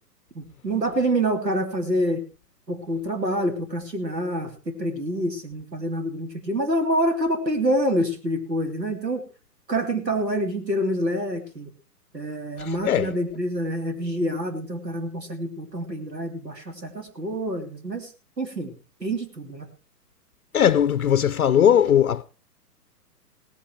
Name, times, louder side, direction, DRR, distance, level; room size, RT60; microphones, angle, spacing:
voice 1, 0.3-2.2 2.7-9.2 9.7-11.7 12.1-18.1 18.4-18.7 19.0-19.7, right 1 dB, 85° right, 3.2 m, -27 dB
voice 2, 12.6-13.1 20.5-22.2, left 9 dB, 60° left, 0.6 m, -19 dB
17.5 x 8.9 x 4.7 m
figure-of-eight pair, 120°, 48 cm